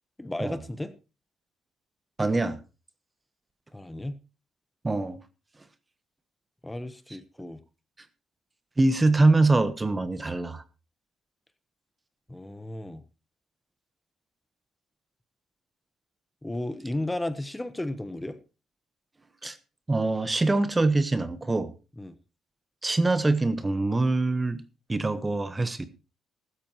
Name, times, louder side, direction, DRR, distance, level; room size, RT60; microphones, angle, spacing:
voice 1, 0.2-0.9 3.7-4.2 6.6-7.6 12.3-13.0 16.4-18.4 22.0-22.2, left 1 dB, 10° left, 1.1 m, -34 dB
voice 2, 2.2-2.6 4.8-5.2 8.8-10.6 19.4-19.6 19.9-21.7 22.8-24.6 24.9-25.9, right 2 dB, 20° right, 1.2 m, -24 dB
15.0 x 13.0 x 3.1 m
cardioid pair, 90°, 0 cm